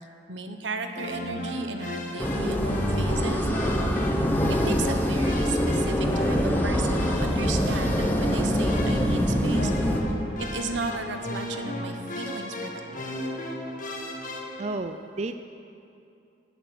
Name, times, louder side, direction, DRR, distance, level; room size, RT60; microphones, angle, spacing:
voice 1, 0.3-3.5 4.6-9.7 10.5-13.0, right 3 dB, 85° right, 6 dB, 1.1 m, -34 dB
sound 1, 0.9-14.7, left 1 dB, 45° left, 1.7 m, -34 dB
sound 2, 2.2-10.0, equal, 10° left, 1.1 m, -24 dB
voice 2, 14.6-15.4, right 2 dB, 35° right, 8 dB, 0.5 m, -31 dB
13.0 x 9.0 x 8.1 m, 2.6 s
head